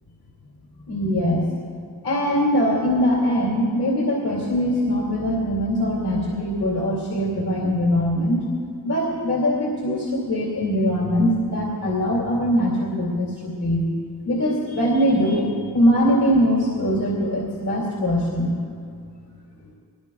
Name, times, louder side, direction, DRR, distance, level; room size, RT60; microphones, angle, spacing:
voice 1, 0.9-1.4 2.0-8.5 8.8-13.9 14.3-18.6, equal, 75° left, -4 dB, 2.6 m, -22 dB
20.5 x 19.0 x 2.3 m, 2.2 s
cardioid pair, 75°, 38 cm